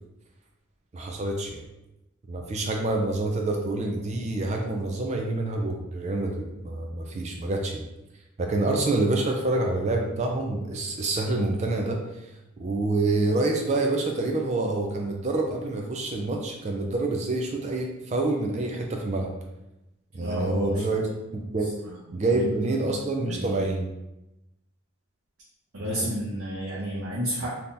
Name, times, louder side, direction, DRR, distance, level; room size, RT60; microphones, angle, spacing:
voice 1, 0.9-1.6 2.3-7.9 8.4-12.0 12.6-19.3 20.1-21.0 21.3-21.7 22.1-23.9 25.9-26.1, right 2 dB, 30° right, 2 dB, 0.3 m, -27 dB
voice 2, 20.2-20.8 22.1-22.4 22.8-23.6 25.7-27.5, equal, 65° right, -6 dB, 0.7 m, -31 dB
3.6 x 2.8 x 2.6 m, 0.94 s
head